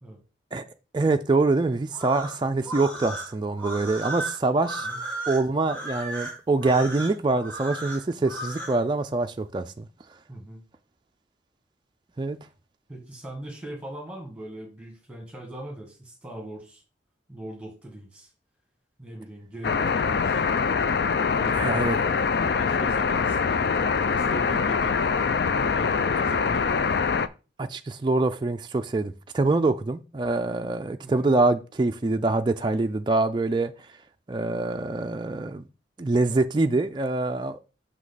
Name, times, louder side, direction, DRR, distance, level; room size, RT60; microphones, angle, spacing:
voice 1, 0.9-4.9 5.3-9.9 12.2-12.4 21.6-22.2 27.6-33.7 34.3-35.6 36.0-37.6, right 3 dB, 25° right, 0.3 m, -25 dB
sound 1, 1.9-8.8, right 1 dB, 10° left, 1.7 m, -35 dB
voice 2, 10.3-10.6 12.9-16.8 17.3-18.3 19.0-20.4 21.3-21.9 22.4-25.0 25.6-27.0 31.0-31.3, right 1 dB, 5° right, 1.9 m, -40 dB
sound 2, 19.6-27.3, left 5 dB, 60° left, 0.4 m, -24 dB
5.9 x 5.2 x 4.0 m
head